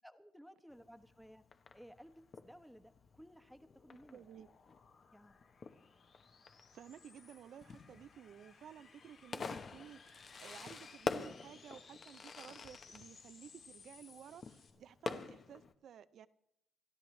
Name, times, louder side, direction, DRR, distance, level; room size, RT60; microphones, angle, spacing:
voice 1, 0.0-1.4 1.7-4.2 5.1-5.4, equal, ahead, 8 dB, 1.1 m, -57 dB
Fireworks, 0.7-15.7, left 5 dB, 45° left, 1.0 m, -48 dB
sound 1, 3.2-14.7, left 5 dB, 65° left, 2.6 m, -62 dB
voice 2, 4.1-4.5 6.7-16.3, right 9 dB, 65° right, 13 dB, 0.5 m, -55 dB
28.5 x 12.5 x 3.2 m, 0.81 s
cardioid pair, 90°, 0 cm